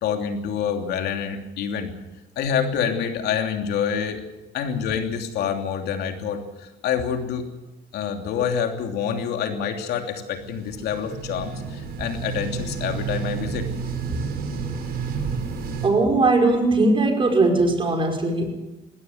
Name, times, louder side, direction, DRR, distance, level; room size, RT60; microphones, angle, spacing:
voice 1, 0.0-1.9 2.4-4.2 4.5-7.5 7.9-13.7, left 7 dB, 75° left, 5 dB, 3.0 m, -27 dB
sound 1, 10.4-15.9, right 5 dB, 65° right, 5.0 m, -30 dB
voice 2, 15.8-18.6, right 2 dB, 30° right, 3 dB, 5.3 m, -19 dB
20.5 x 16.5 x 8.1 m, 1.0 s
cardioid pair, 110°, 17 cm